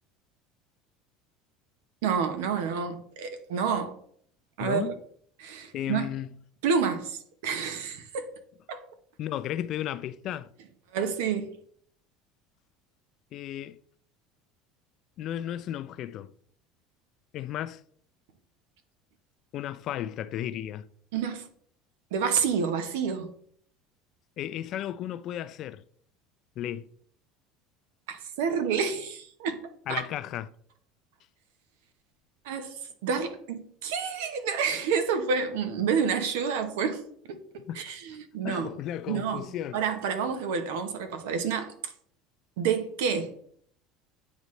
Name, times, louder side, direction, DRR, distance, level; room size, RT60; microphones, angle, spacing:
voice 1, 2.0-4.0 4.6-4.8 5.4-6.1 6.6-7.2 7.4-8.3 8.7-8.8 10.9-11.5 21.1-21.5 22.1-23.3 28.1-30.0 32.4-37.0 37.3-38.7 39.1-39.5 39.7-41.9 42.6-43.3, right 6 dB, 85° right, 1.0 m, -29 dB
voice 2, 4.6-5.0 5.7-6.3 9.2-10.5 13.3-13.8 15.2-16.3 17.3-17.8 19.5-20.9 24.4-25.8 26.6-26.9 29.9-30.5 37.7-38.0 38.4-39.8, left 11 dB, 50° left, 0.4 m, -34 dB
9.2 x 4.1 x 3.2 m
supercardioid pair, 125°, 0 cm